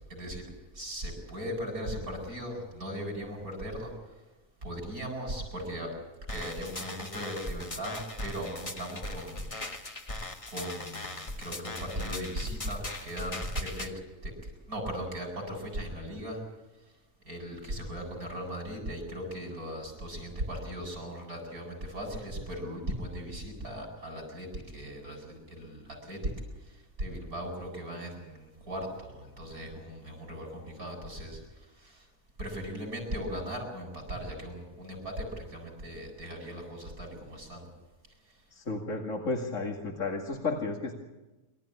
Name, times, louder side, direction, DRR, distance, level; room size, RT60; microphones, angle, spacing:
voice 1, 0.1-0.4 0.7-3.9 4.6-5.9 6.3-9.5 9.8-10.0 10.5-13.9 14.2-16.4 17.2-26.3 26.6-32.1 32.4-37.7, equal, 85° right, 1 dB, 8.6 m, -38 dB
sound 1, 6.3-13.9, left 2 dB, 25° left, 1.5 m, -39 dB
voice 2, 38.5-40.9, left 3 dB, 60° left, 0 dB, 2.6 m, -33 dB
27.5 x 14.0 x 9.9 m, 1.1 s
omnidirectional pair, 1.5 m